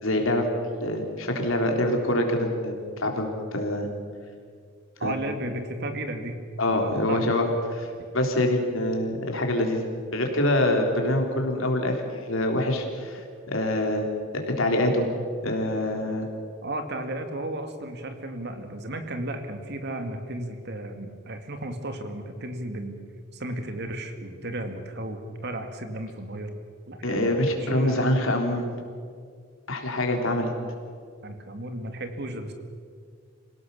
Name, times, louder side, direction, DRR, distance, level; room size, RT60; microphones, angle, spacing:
voice 1, 0.0-0.5 0.7-2.7 3.0-3.9 5.0-5.1 6.6-9.8 10.1-14.1 14.3-15.1 15.4-16.3 27.0-28.7 29.7-30.5, left 1 dB, 75° left, 2 dB, 3.7 m, -25 dB
voice 2, 5.0-6.4 6.7-7.3 16.6-23.0 23.3-26.5 26.9-28.0 31.2-32.5, right 1 dB, 55° right, 7 dB, 2.3 m, -34 dB
27.0 x 17.5 x 7.0 m, 2.1 s
head